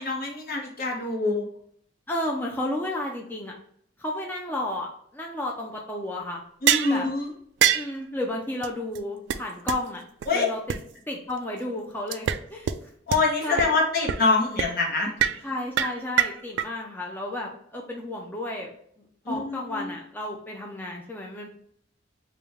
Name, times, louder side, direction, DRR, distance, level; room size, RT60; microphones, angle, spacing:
voice 1, 0.0-1.4 6.6-7.3 10.3-10.5 13.1-15.1 15.4-15.5 19.2-19.9, left 3 dB, 55° left, 0 dB, 1.0 m, -25 dB
voice 2, 2.1-3.5 4.0-6.4 6.9-7.1 7.7-10.0 10.3-10.8 11.1-12.9 13.4-13.7 15.4-18.7 19.3-21.5, left 1 dB, 10° left, -1 dB, 0.5 m, -32 dB
sound 1, 6.7-7.0 7.6-7.9 8.6-8.7 9.0-9.1 9.3-9.4 9.7-9.8 10.2-10.3 10.7-10.8 12.1-12.4 12.7-12.8 13.1-13.2 13.6-13.7 14.1-14.3 14.6-14.7 15.2-15.4 15.8-16.7, right 9 dB, 75° right, 0.3 m, -23 dB
4.9 x 2.3 x 3.4 m, 0.66 s
head